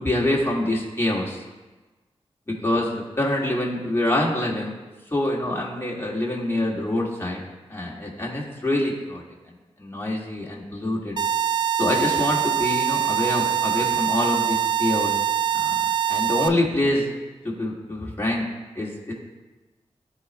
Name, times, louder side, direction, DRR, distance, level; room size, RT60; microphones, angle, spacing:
voice 1, 0.0-1.4 2.5-4.7 5.1-7.4 7.7-9.2 9.8-11.1 11.8-15.2 15.5-17.1 17.4-18.4 18.8-19.1, left 1 dB, 20° left, -3 dB, 1.8 m, -25 dB
sound 1, 11.2-16.5, right 9 dB, 40° right, 0.4 m, -23 dB
12.0 x 4.2 x 2.2 m, 1.2 s
cardioid pair, 45°, 12 cm